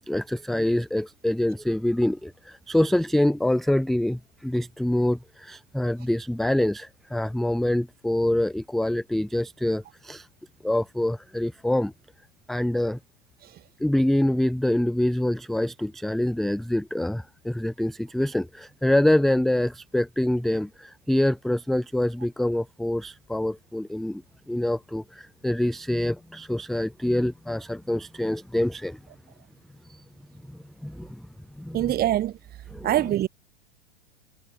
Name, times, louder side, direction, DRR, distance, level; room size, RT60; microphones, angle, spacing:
voice 1, 0.1-10.3 10.6-11.9 12.5-13.0 13.8-24.2 24.5-29.0 29.9-30.0 30.5-31.3 31.6-31.8 32.7-32.9, left 1 dB, ahead, 0.5 m, -25 dB
voice 2, 31.7-32.4 32.8-33.3, right 13 dB, 25° right, 1.7 m, -23 dB
hypercardioid pair, 135°, 34 cm